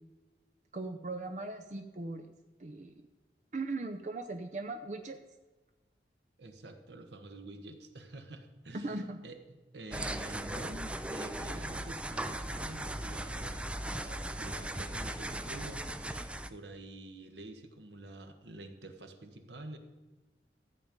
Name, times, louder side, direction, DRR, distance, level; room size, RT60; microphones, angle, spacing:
voice 1, 0.7-2.3 2.6-3.1 3.5-5.2 8.7-9.2, right 2 dB, 40° right, 6 dB, 0.7 m, -39 dB
voice 2, 6.4-19.8, right 2 dB, 80° right, 6 dB, 1.3 m, -48 dB
sound 1, 9.9-16.5, right 1 dB, 5° right, 0.3 m, -38 dB
13.5 x 8.6 x 5.2 m, 1.2 s
head